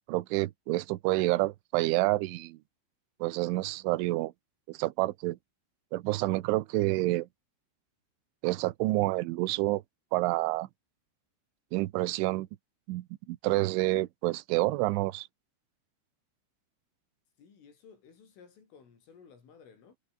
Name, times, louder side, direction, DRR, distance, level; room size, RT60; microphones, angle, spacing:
voice 1, 0.1-2.6 3.2-4.3 4.7-5.4 5.9-7.3 8.4-9.8 10.1-10.7 11.7-12.5 12.9-15.3, right 19 dB, 80° right, 3.4 m, -28 dB
voice 2, 17.4-20.0, left 6 dB, 80° left, 8.3 m, -56 dB
omnidirectional pair, 5.7 m